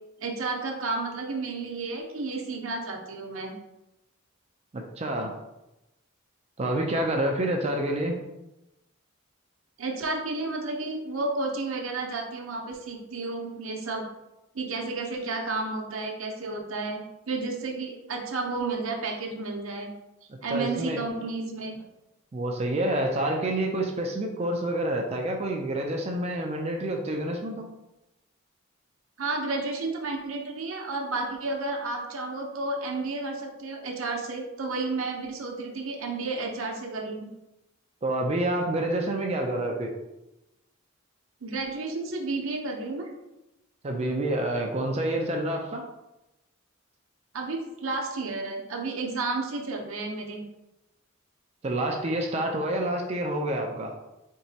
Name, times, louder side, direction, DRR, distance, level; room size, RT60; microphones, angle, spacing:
voice 1, 0.2-3.5 9.8-14.0 14.5-19.9 20.4-21.8 29.2-37.3 41.4-43.1 47.3-50.4, right 3 dB, 70° right, 1 dB, 0.7 m, -32 dB
voice 2, 4.7-5.3 6.6-8.2 20.5-21.0 22.3-27.6 38.0-39.9 43.8-45.8 51.6-53.9, right 1 dB, 30° right, 2 dB, 0.4 m, -28 dB
4.5 x 2.9 x 2.7 m, 0.93 s
head